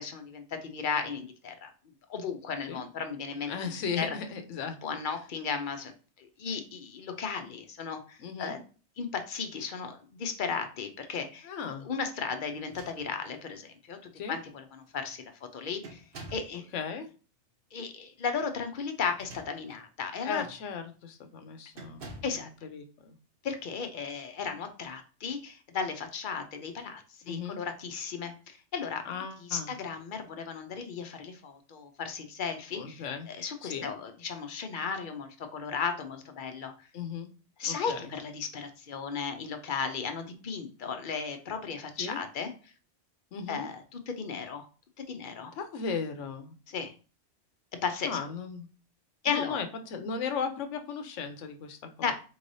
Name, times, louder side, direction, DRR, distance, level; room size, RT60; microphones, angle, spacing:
voice 1, 0.0-1.7 2.1-4.2 4.8-5.9 6.2-8.6 9.0-11.5 11.8-14.0 14.3-16.0 16.3-16.7 17.7-20.4 22.2-22.5 23.4-29.0 29.4-36.7 37.6-42.5 43.5-44.7 45.0-45.5 46.7-46.9 47.8-48.2 49.2-49.6 52.0-52.1, left 5 dB, 55° left, 7 dB, 0.7 m, -35 dB
voice 2, 3.5-4.8 8.2-8.6 11.4-11.9 14.2-14.4 16.7-17.1 20.2-22.0 22.6-23.2 27.3-27.6 29.0-29.7 32.7-33.3 33.6-33.9 36.9-37.3 37.6-38.0 42.0-42.2 43.3-43.7 45.5-46.6 48.0-48.7 49.3-52.1, left 6 dB, 85° left, 7 dB, 1.0 m, -36 dB
sound 1, 12.6-13.5 14.4-14.5 14.8-15.2 15.8-16.6 19.0-19.9 20.4-20.6 21.7-22.4, right 1 dB, 55° right, 1.0 m, -48 dB
4.6 x 3.2 x 2.6 m, 0.36 s
omnidirectional pair, 1.2 m